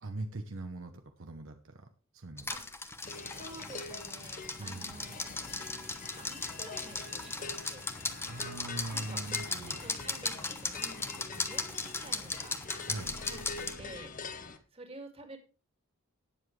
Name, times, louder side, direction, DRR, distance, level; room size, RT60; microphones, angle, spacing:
voice 1, 0.0-1.9 2.1-2.5 4.6-5.0 7.9-9.8 12.8-13.2, right 2 dB, 60° right, 6 dB, 1.0 m, -42 dB
sound 1, 2.4-13.8, left 3 dB, 10° left, 1.0 m, -38 dB
sound 2, 3.0-14.6, left 4 dB, 40° left, 1.1 m, -45 dB
voice 2, 3.4-5.3 6.2-7.9 8.9-12.6 13.3-15.4, right 2 dB, 25° right, 5 dB, 2.3 m, -50 dB
sound 3, 5.2-14.0, equal, 80° right, 4.3 m, -54 dB
18.5 x 7.4 x 3.3 m, 0.32 s
head